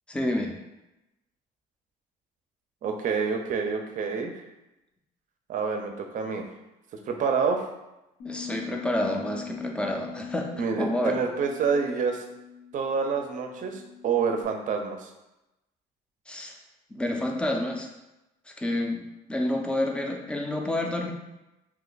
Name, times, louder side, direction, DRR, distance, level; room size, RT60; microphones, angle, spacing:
voice 1, 0.1-0.6 8.2-10.5 10.8-11.2 16.3-16.6 16.9-17.9 18.5-19.0 19.3-21.1, left 1 dB, 5° left, 1 dB, 0.4 m, -29 dB
voice 2, 2.8-4.4 5.5-6.4 7.1-7.7 10.6-12.3 12.7-15.1, right 5 dB, 50° right, 4 dB, 0.5 m, -27 dB
Bass guitar, 8.2-14.4, left 8 dB, 85° left, 0.9 m, -42 dB
2.8 x 2.2 x 3.8 m, 0.96 s
cardioid pair, 110°, 17 cm